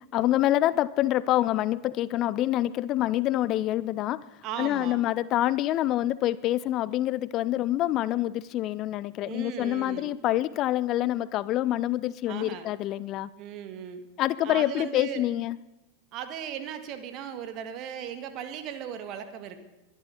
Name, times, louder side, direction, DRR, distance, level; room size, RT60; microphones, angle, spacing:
voice 1, 0.0-13.3 14.2-15.6, left 14 dB, 35° left, 19 dB, 0.4 m, -26 dB
voice 2, 4.4-5.0 9.2-10.1 12.3-12.7 13.4-14.0 14.4-15.2 16.1-19.6, right 9 dB, 40° right, 8 dB, 1.8 m, -37 dB
22.5 x 12.0 x 4.0 m, 0.98 s
figure-of-eight pair, 90°, 0 cm